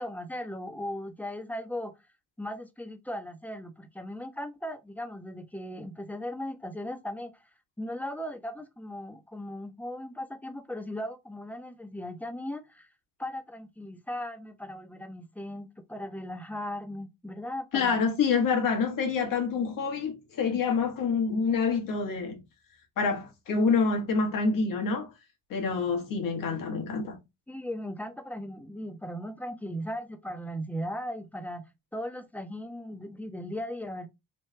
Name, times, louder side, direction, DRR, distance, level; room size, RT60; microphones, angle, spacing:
voice 1, 0.0-1.9 2.4-7.4 7.8-12.9 13.2-18.0 26.3-26.6 27.5-34.1, left 1 dB, 5° left, 0.7 m, -37 dB
voice 2, 17.7-22.4 23.0-25.1 25.5-27.2, left 5 dB, 70° left, 1.3 m, -27 dB
3.3 x 2.3 x 3.2 m
supercardioid pair, 65°, 35 cm